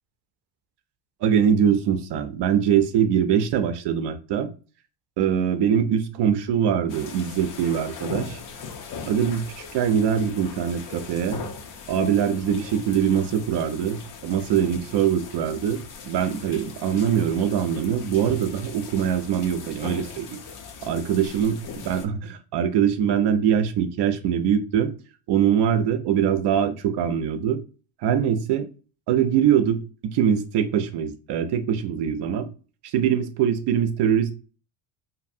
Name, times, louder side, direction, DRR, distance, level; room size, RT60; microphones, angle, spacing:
voice 1, 1.2-4.5 5.2-8.4 9.0-11.4 11.9-15.8 16.0-20.4 20.8-24.9 25.3-27.6 28.0-28.7 29.1-32.5 32.8-34.3, right 8 dB, 60° right, 8 dB, 0.5 m, -23 dB
sound 1, 6.9-22.1, left 5 dB, 45° left, 0.5 m, -40 dB
2.7 x 2.5 x 2.5 m, 0.36 s
supercardioid pair, 100°, 48 cm